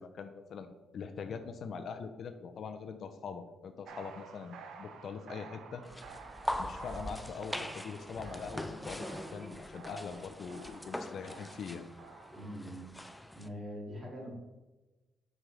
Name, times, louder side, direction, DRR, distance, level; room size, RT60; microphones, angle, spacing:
voice 1, 0.0-5.8 6.6-11.8, left 5 dB, 60° left, 8 dB, 0.5 m, -43 dB
sound 1, 3.9-12.5, right 6 dB, 75° right, 0.5 m, -52 dB
sound 2, 5.8-13.5, left 1 dB, 5° left, 0.4 m, -42 dB
voice 2, 12.3-12.9 13.3-14.3, equal, 30° right, -2 dB, 2.1 m, -43 dB
6.0 x 5.2 x 3.3 m, 1.1 s
cardioid pair, 90°, 0 cm